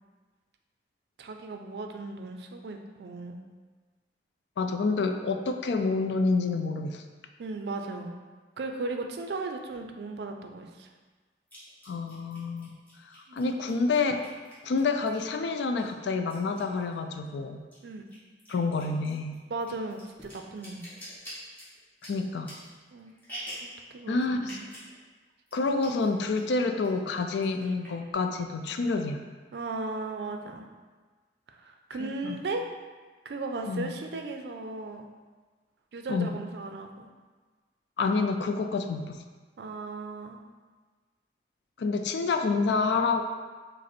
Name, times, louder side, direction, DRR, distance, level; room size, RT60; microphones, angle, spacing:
voice 1, 1.2-3.4 7.4-8.1 8.6-10.9 13.3-13.4 17.8-18.0 19.5-20.8 22.9-23.2 23.9-24.7 29.5-30.7 31.5-32.6 33.2-35.1 35.9-37.1 39.6-40.4, right 3 dB, 70° right, 4 dB, 0.4 m, -36 dB
voice 2, 4.6-7.0 11.9-12.7 13.3-14.2 14.6-17.6 18.5-19.4 22.0-22.6 24.1-24.6 25.5-29.2 32.0-32.4 33.6-33.9 36.1-36.3 38.0-39.2 41.8-43.2, left 4 dB, 80° left, 6 dB, 0.4 m, -28 dB
sound 1, 9.7-9.8 11.5-15.4 15.8-17.3 17.6-23.8 24.4-24.9 25.2-25.3 25.5-26.1 26.4-26.9 27.3-28.1, equal, 10° left, 1.2 m, -46 dB
5.0 x 2.1 x 4.2 m, 1.4 s
head